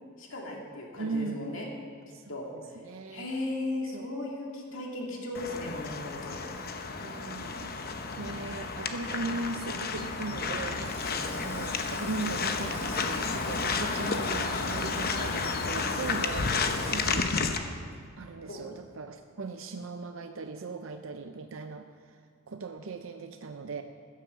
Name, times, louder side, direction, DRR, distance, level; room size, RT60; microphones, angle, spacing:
voice 1, 0.2-1.7 2.3-2.5 3.1-6.4 11.0-11.3 16.6-16.8 18.5-18.7, left 2 dB, 60° left, -1 dB, 2.3 m, -36 dB
voice 2, 1.0-1.4 2.1-3.3 3.9-4.1 7.0-7.7 8.2-11.0 11.3-17.5 18.2-22.2 22.5-23.8, right 3 dB, 60° right, 7 dB, 0.5 m, -38 dB
sound 1, 5.3-17.6, left 4 dB, 45° left, 0.8 m, -31 dB
Sink (filling or washing), 10.6-19.1 19.4-19.6 20.8-21.0, right 2 dB, 10° right, 1.7 m, -50 dB
15.5 x 7.4 x 6.9 m, 2.2 s
head